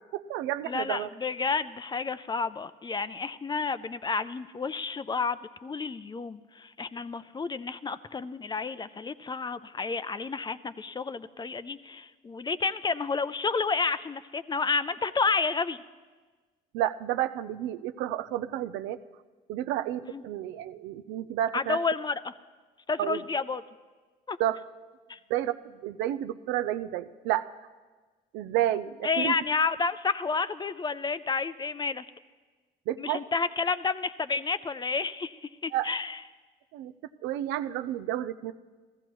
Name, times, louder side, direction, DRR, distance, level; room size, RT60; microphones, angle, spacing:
voice 1, 0.1-1.1 16.7-19.0 19.5-21.8 23.0-23.2 24.4-24.6 25.3-27.5 28.3-29.4 32.9-33.2 35.7-35.9 36.7-36.9 37.2-38.5, right 12 dB, 85° right, 11 dB, 0.5 m, -30 dB
voice 2, 0.6-15.8 20.0-20.2 21.5-22.3 22.9-23.6 24.3-24.4 25.1-25.2 29.0-32.1 33.0-36.2, left 4 dB, 25° left, 14 dB, 0.4 m, -30 dB
14.5 x 14.5 x 3.1 m, 1.4 s
supercardioid pair, 70°, 19 cm